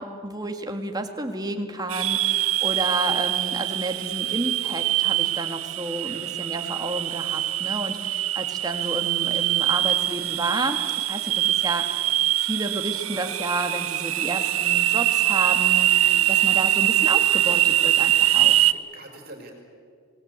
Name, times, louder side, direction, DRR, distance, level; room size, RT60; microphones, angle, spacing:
voice 1, 0.0-18.6, right 2 dB, 20° right, 5 dB, 1.9 m, -31 dB
sound 1, 1.9-18.7, right 13 dB, 75° right, 0.8 m, -23 dB
voice 2, 18.7-19.5, right 2 dB, 45° right, 2 dB, 5.0 m, -45 dB
27.0 x 19.5 x 8.3 m, 2.2 s
head